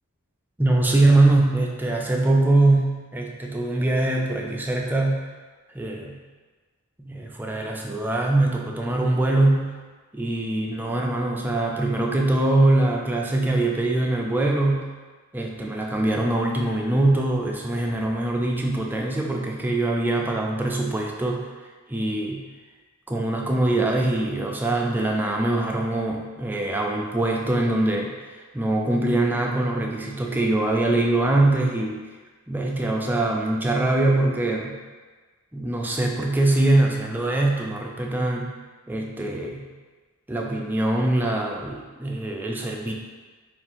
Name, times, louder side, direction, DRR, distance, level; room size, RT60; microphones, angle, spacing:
voice 1, 0.6-5.3 5.7-6.2 7.1-9.7 10.1-14.9 15.3-21.5 21.9-22.4 23.1-32.0 32.5-34.8 35.5-38.6 38.9-39.7 40.3-42.9, right 2 dB, 10° right, -1 dB, 0.3 m, -23 dB
3.4 x 2.5 x 4.2 m, 1.4 s
head